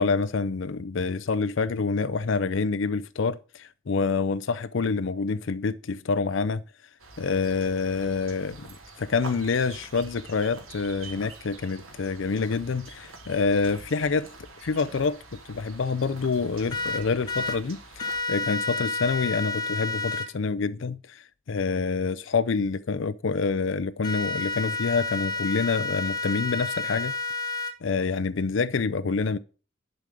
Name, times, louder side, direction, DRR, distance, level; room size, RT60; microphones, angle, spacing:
voice 1, 0.0-6.6 7.2-14.3 14.6-27.1 27.8-29.4, left 4 dB, 70° left, 0.5 m, -27 dB
sound 1, 7.0-18.2, right 3 dB, 85° right, 2.6 m, -46 dB
sound 2, 16.7-17.6 18.0-20.3 24.0-27.7, left 3 dB, 20° left, 1.7 m, -30 dB
11.0 x 5.2 x 7.6 m
head